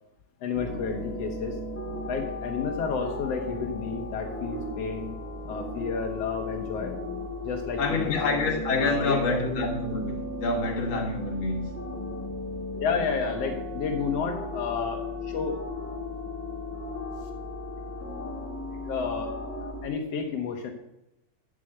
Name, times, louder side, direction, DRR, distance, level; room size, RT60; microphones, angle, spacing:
voice 1, 0.4-1.5 2.1-5.1 5.4-6.9 7.4-8.2 8.8-9.4 12.7-15.6 18.9-19.3 19.6-20.7, left 5 dB, 80° left, 3 dB, 1.4 m, -31 dB
sound 1, 0.5-19.9, left 2 dB, 5° left, 1.4 m, -36 dB
voice 2, 7.8-11.7, left 3 dB, 35° left, -1 dB, 2.5 m, -27 dB
12.0 x 7.4 x 7.9 m, 0.87 s
omnidirectional pair, 4.9 m